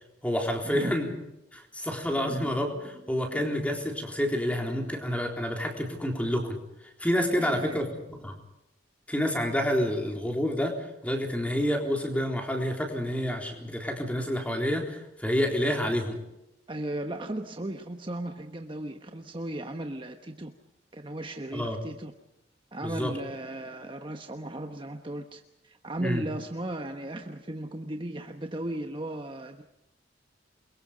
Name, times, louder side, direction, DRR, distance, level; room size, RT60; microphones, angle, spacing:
voice 1, 0.2-1.1 1.5-6.6 7.0-8.4 9.1-10.7 11.0-16.2 21.5-21.8 22.8-23.1 26.0-26.3, equal, 10° left, 2 dB, 3.8 m, -28 dB
voice 2, 2.1-2.6 2.9-3.0 3.3-3.4 7.3-7.8 16.7-20.5 20.9-22.1 22.7-29.6, right 1 dB, 25° right, 5 dB, 1.1 m, -36 dB
28.0 x 23.0 x 5.2 m, 0.86 s
head